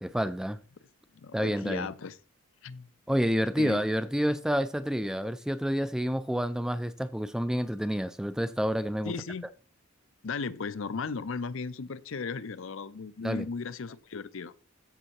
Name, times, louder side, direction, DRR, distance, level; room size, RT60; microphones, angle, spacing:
voice 1, 0.0-0.6 1.3-1.9 3.1-9.1 13.2-13.5, equal, 5° right, 0.3 m, -29 dB
voice 2, 1.1-2.2 2.6-2.9 3.6-3.8 9.0-9.5 10.2-14.5, left 4 dB, 65° left, 0.5 m, -36 dB
14.0 x 5.5 x 2.9 m
head